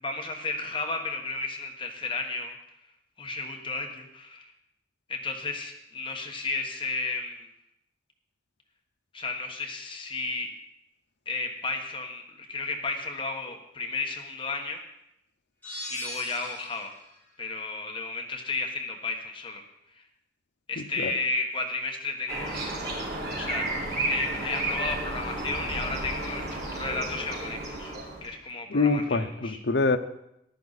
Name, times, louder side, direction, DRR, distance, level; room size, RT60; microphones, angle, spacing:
voice 1, 0.0-2.5 3.2-4.5 5.1-7.5 9.1-10.5 11.3-14.8 15.9-16.9 17.4-19.6 20.0-20.1 20.7-22.6 23.3-23.7 24.1-28.0 28.2-29.6, left 3 dB, 30° left, 3 dB, 1.4 m, -33 dB
sound 1, 15.6-17.0, left 1 dB, 10° left, 4.4 m, -39 dB
voice 2, 20.8-21.1 28.7-30.0, left 3 dB, 70° left, 8 dB, 0.8 m, -25 dB
sound 2, 22.3-28.3, right 2 dB, 60° right, 5.1 m, -32 dB
14.0 x 12.0 x 4.2 m, 0.81 s
head